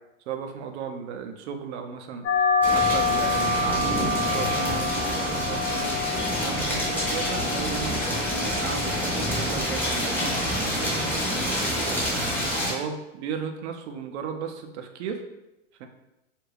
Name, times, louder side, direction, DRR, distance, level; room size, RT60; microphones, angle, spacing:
voice 1, 0.3-2.3 2.7-5.9 6.4-12.1 12.7-15.2 15.8-15.9, right 6 dB, 60° right, 6 dB, 0.5 m, -35 dB
sound 1, 2.2-11.3, left 3 dB, 80° left, 0.9 m, -28 dB
sound 2, 2.6-12.7, equal, 5° left, 0.7 m, -27 dB
2.4 x 2.2 x 3.2 m, 0.93 s
hypercardioid pair, 115°, 38 cm